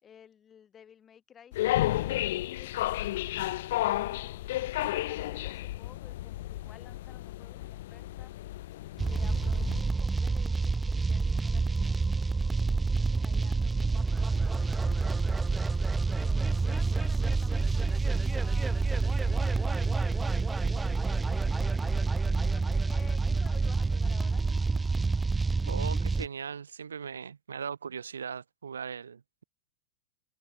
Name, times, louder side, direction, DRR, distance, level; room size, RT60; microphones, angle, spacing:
voice 1, 0.0-3.0 3.8-8.3 9.1-12.0 12.7-12.8 13.1-14.8 15.8-24.4, left 8 dB, 30° left, 4.5 m, -55 dB
sound 1, 1.5-9.8, left 15 dB, 65° left, 1.5 m, -32 dB
sound 2, 9.0-26.3, right 4 dB, 15° right, 0.4 m, -28 dB
voice 2, 25.7-29.4, right 6 dB, 85° right, 1.6 m, -39 dB
hypercardioid pair, 95°, 0 cm